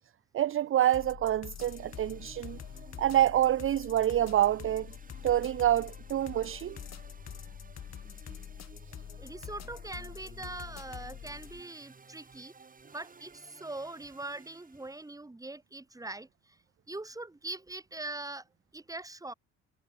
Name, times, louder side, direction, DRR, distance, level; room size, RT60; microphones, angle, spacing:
voice 1, 0.3-2.6 3.0-4.9 5.2-6.8, right 12 dB, 45° right, 0.5 m, -27 dB
sound 1, 0.9-11.6, left 9 dB, 60° left, 5.5 m, -45 dB
sound 2, 1.6-15.1, right 4 dB, 30° right, 2.1 m, -55 dB
voice 2, 9.2-12.5 12.9-16.6 16.9-18.4 18.7-19.3, right 2 dB, 10° right, 1.8 m, -42 dB
cardioid pair, 90°, 30 cm